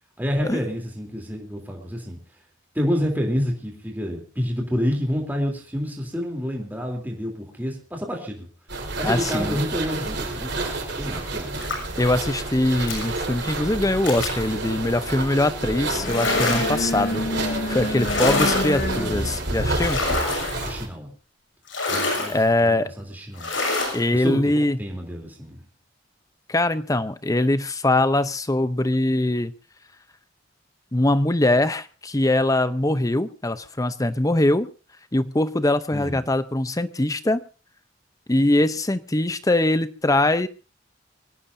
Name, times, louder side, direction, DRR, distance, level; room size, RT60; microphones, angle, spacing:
voice 1, 0.2-2.2 2.8-8.5 9.0-11.5 18.0-18.2 20.6-21.1 21.9-23.6 24.1-25.6 35.9-36.2, equal, 10° right, 1 dB, 3.4 m, -28 dB
sound 1, 8.7-20.9, right 2 dB, 65° right, 4.7 m, -30 dB
voice 2, 9.0-9.6 12.0-20.0 22.3-22.9 23.9-24.8 26.5-29.5 30.9-34.7 35.1-37.4 38.3-40.5, left 1 dB, 20° left, 13 dB, 0.7 m, -22 dB
sound 2, 11.5-12.0 12.9-13.1 14.1-14.4 16.0-16.9 18.0-18.8 19.8-20.7 21.7-22.4 23.4-24.0, left 2 dB, 80° left, 6.7 m, -26 dB
sound 3, 15.6-20.8, left 1 dB, 55° left, 2.3 m, -30 dB
23.0 x 17.0 x 2.7 m, 0.33 s
head